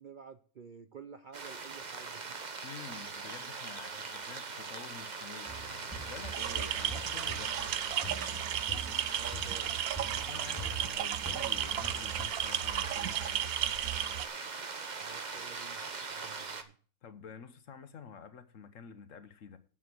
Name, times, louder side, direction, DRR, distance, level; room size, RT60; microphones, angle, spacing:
voice 1, 0.0-2.4 9.2-9.8 15.0-16.8, right 6 dB, 55° right, 0.5 m, -51 dB
sound 1, 1.3-16.6, right 4 dB, 35° right, 1.0 m, -41 dB
voice 2, 2.6-7.7 10.1-13.6 17.0-19.6, left 6 dB, 60° left, 1.3 m, -49 dB
sound 2, 5.5-12.2, right 1 dB, 5° left, 2.1 m, -45 dB
sound 3, 6.3-14.3, right 11 dB, 80° right, 1.1 m, -34 dB
9.6 x 7.3 x 6.2 m
omnidirectional pair, 1.5 m